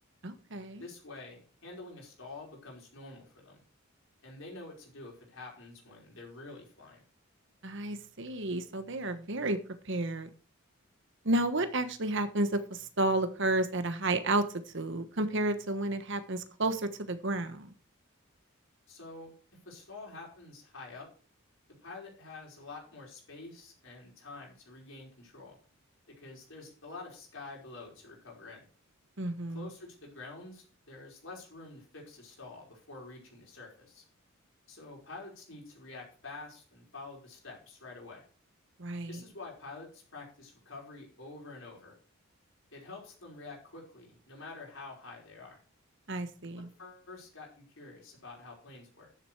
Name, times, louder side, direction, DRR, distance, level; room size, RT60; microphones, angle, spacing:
voice 1, 0.2-0.8 7.6-9.6 9.9-10.3 11.2-14.4 14.7-17.7 29.2-29.6 38.8-39.2 46.1-46.7, right 2 dB, 55° right, 10 dB, 1.2 m, -31 dB
voice 2, 0.8-3.6 4.2-7.0 18.9-19.3 19.7-21.1 21.8-25.6 26.2-28.7 29.5-34.0 34.7-38.2 39.1-42.0 42.7-45.6 46.6-49.1, left 3 dB, 60° left, -2 dB, 5.2 m, -48 dB
12.5 x 7.5 x 4.7 m, 0.39 s
head